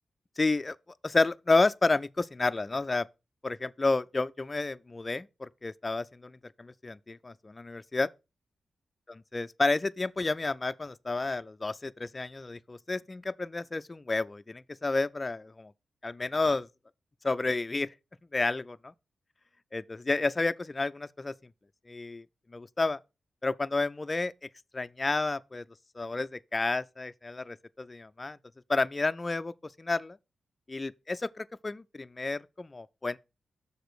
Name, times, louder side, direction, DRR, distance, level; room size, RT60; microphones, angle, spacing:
voice 1, 0.4-0.8 1.0-3.1 3.4-8.1 9.3-15.7 16.0-16.7 17.2-17.9 18.3-18.9 19.7-21.3 21.9-22.3 22.5-23.0 23.4-24.3 24.7-25.6 26.0-28.4 28.7-29.5 29.8-30.2 30.7-33.2, left 3 dB, 25° left, 0.3 m, -30 dB
6.6 x 5.0 x 6.2 m
wide cardioid pair, 130°, 0 cm